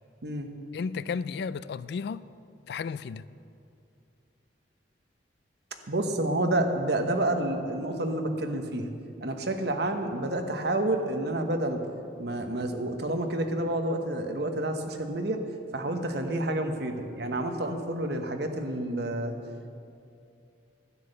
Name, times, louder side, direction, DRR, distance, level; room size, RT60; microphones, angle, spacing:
voice 1, 0.7-2.2 2.7-3.3, left 5 dB, 65° left, 0.3 m, -33 dB
voice 2, 5.9-8.9 9.2-11.8 12.2-15.4 15.7-19.3, right 1 dB, 65° right, 1.1 m, -29 dB
11.5 x 10.0 x 6.7 m
head